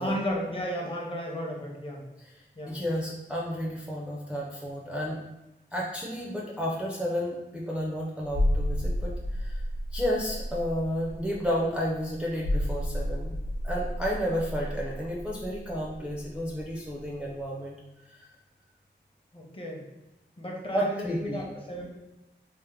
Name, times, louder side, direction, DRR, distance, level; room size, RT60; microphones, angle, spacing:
voice 1, 0.0-2.0 2.6-2.8 19.3-19.8 20.4-21.9, equal, 30° left, -1 dB, 0.7 m, -33 dB
voice 2, 2.7-5.2 5.7-9.6 9.9-13.3 13.6-17.8 18.2-18.3 20.7-21.5, equal, 5° right, -3 dB, 0.4 m, -31 dB
sound 1, 8.3-16.7 17.0-17.1, equal, 75° left, 0.8 m, -31 dB
3.4 x 2.0 x 3.3 m, 1.0 s
wide cardioid pair, 100°, 18 cm